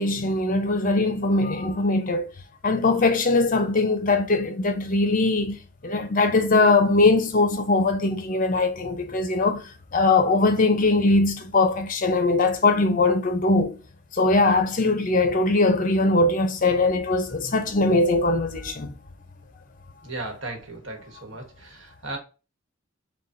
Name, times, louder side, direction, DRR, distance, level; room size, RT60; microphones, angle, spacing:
voice 1, 0.0-2.3 2.6-9.6 9.9-13.7 14.1-18.9, left 3 dB, 40° left, 0.6 m, -21 dB
voice 2, 20.0-22.2, right 2 dB, 65° right, 1.2 m, -36 dB
6.8 x 2.3 x 2.6 m
head